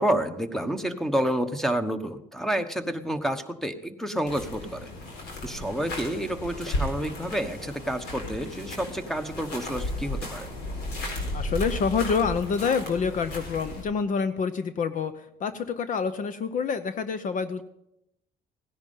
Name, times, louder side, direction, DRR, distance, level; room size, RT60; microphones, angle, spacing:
voice 1, 0.0-4.9 5.4-10.5, right 1 dB, ahead, 10 dB, 1.1 m, -29 dB
sound 1, 4.3-13.8, left 1 dB, 80° left, 4.2 m, -34 dB
voice 2, 11.3-17.6, left 5 dB, 50° left, 11 dB, 0.8 m, -27 dB
16.5 x 10.5 x 5.5 m, 0.83 s
cardioid pair, 110°, 17 cm